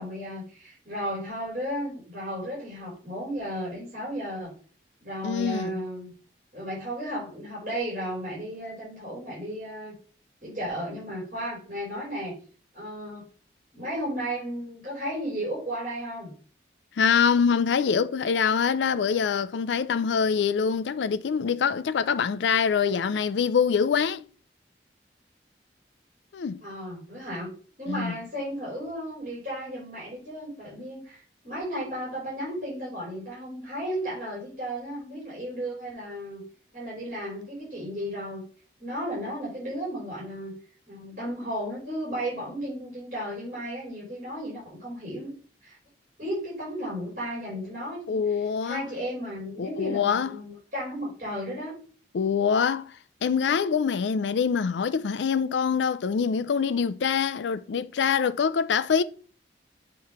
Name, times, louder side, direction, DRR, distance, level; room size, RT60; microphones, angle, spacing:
voice 1, 0.0-4.5 5.0-6.1 6.5-9.9 10.4-12.4 12.7-13.3 13.7-16.3 26.6-27.5 27.8-36.4 36.7-38.4 38.8-40.5 40.9-45.3 45.6-45.8 46.2-51.7, equal, 45° right, 4.1 m, -34 dB
voice 2, 5.2-5.8 17.0-24.2 26.3-26.6 27.9-28.1 48.1-48.8 49.6-50.4 52.1-59.0, left 6 dB, 90° left, 0.4 m, -25 dB
7.6 x 3.1 x 5.6 m
head